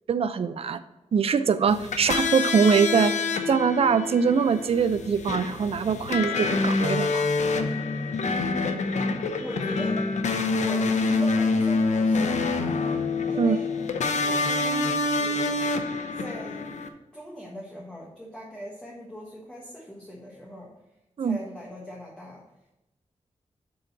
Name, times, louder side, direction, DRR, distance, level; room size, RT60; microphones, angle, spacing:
voice 1, 0.1-0.8 1.1-3.2 3.5-7.3 13.4-13.6 21.2-21.4, right 6 dB, 55° right, 12 dB, 0.4 m, -23 dB
sound 1, 1.7-16.9, left 3 dB, 85° left, 0.6 m, -26 dB
voice 2, 9.4-10.0 10.5-12.8 13.3-13.7 14.2-15.7 16.1-16.7 17.1-20.7 21.2-22.4, equal, 5° left, -4 dB, 1.3 m, -40 dB
6.7 x 3.9 x 5.8 m, 0.94 s
wide cardioid pair, 100°, 12 cm